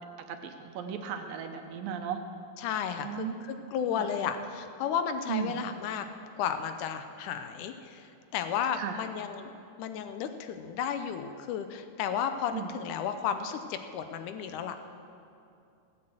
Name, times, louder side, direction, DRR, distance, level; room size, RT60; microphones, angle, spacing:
voice 1, 0.3-2.2 3.0-3.4 3.9-4.1 5.3-5.6 8.7-9.0 12.5-12.7, right 8 dB, 75° right, 6 dB, 2.4 m, -36 dB
voice 2, 2.6-6.1 6.4-9.5 9.8-14.8, left 8 dB, 75° left, 8 dB, 1.9 m, -33 dB
17.5 x 8.8 x 7.8 m, 2.6 s
omnidirectional pair, 4.3 m